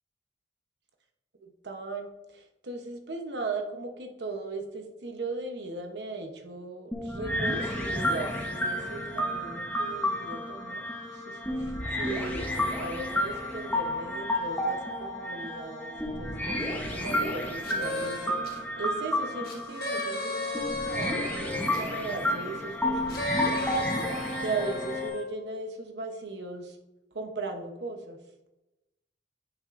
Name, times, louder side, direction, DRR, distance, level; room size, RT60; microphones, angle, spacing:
voice 1, 1.4-10.8 11.1-23.3 23.7-23.9 24.4-26.8 27.1-28.2, right 3 dB, 70° right, 4 dB, 0.9 m, -38 dB
sound 1, 6.9-25.1, left 1 dB, 10° left, 1.0 m, -31 dB
sound 2, 17.6-18.6 19.4-21.9 23.1-25.3, left 2 dB, 55° left, 1.3 m, -34 dB
9.2 x 5.7 x 2.6 m, 0.98 s
head